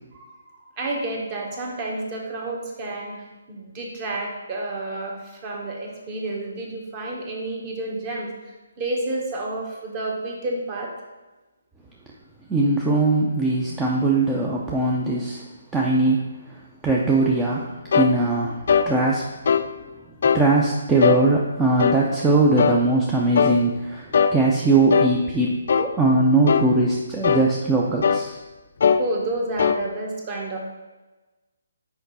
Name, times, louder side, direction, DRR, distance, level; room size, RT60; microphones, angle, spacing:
voice 1, 0.1-8.3 8.8-10.9 29.0-30.6, right 2 dB, 30° right, -1 dB, 1.3 m, -30 dB
voice 2, 12.5-15.4 15.7-19.2 20.3-28.4, right 2 dB, 10° right, -3 dB, 0.5 m, -21 dB
sound 1, 17.9-18.1 18.7-18.9 19.5-19.7 20.2-20.5 21.0-21.2 21.8-22.0 22.6-22.8 23.4-23.6 24.1-24.4 24.9-25.1 25.7-25.9 26.5-26.7 27.2-27.5 28.0-28.3 28.8-29.0 29.6-29.8, left 6 dB, 60° left, 0.3 m, -19 dB
5.8 x 4.8 x 4.1 m, 1.2 s
hypercardioid pair, 155°, 0 cm